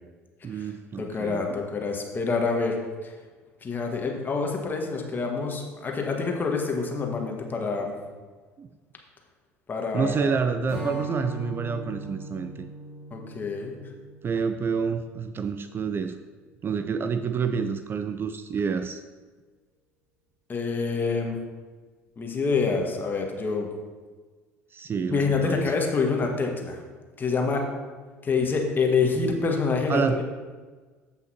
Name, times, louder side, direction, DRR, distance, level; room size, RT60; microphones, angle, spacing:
voice 1, 0.4-1.6 8.6-8.7 9.9-12.5 14.2-16.2 16.6-19.0 24.7-25.7 29.9-30.2, right 5 dB, 30° right, 9 dB, 0.5 m, -28 dB
voice 2, 1.0-2.8 3.0-3.1 3.6-8.0 9.7-10.4 13.1-13.8 20.5-21.4 22.2-23.7 25.1-26.8 27.2-27.7 28.2-30.2, left 4 dB, 25° left, 1 dB, 1.7 m, -27 dB
Strum, 10.7-16.1, right 1 dB, 70° right, 1.7 m, -40 dB
14.0 x 5.8 x 2.9 m, 1.4 s
figure-of-eight pair, 60°, 7 cm